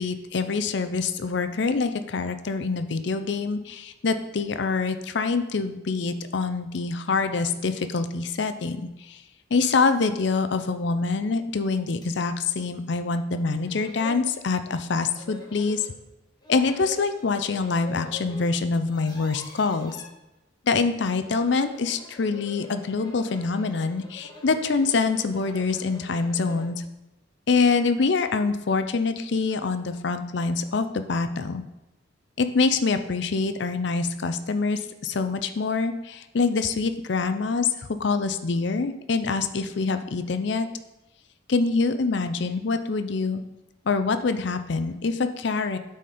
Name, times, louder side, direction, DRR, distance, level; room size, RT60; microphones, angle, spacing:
voice 1, 0.0-9.2 9.5-15.9 16.5-20.0 20.7-26.8 27.5-31.6 32.4-37.7 38.0-40.7 41.5-43.4 43.9-45.8, left 4 dB, 60° left, 9 dB, 0.5 m, -25 dB
sound 1, 12.0-12.1 12.6-12.7 13.3-13.4 13.6-14.3 15.2-15.9 16.4-18.5 18.8-20.1 21.1-26.8, left 2 dB, 20° left, 1.1 m, -45 dB
8.9 x 4.3 x 5.0 m, 0.94 s
head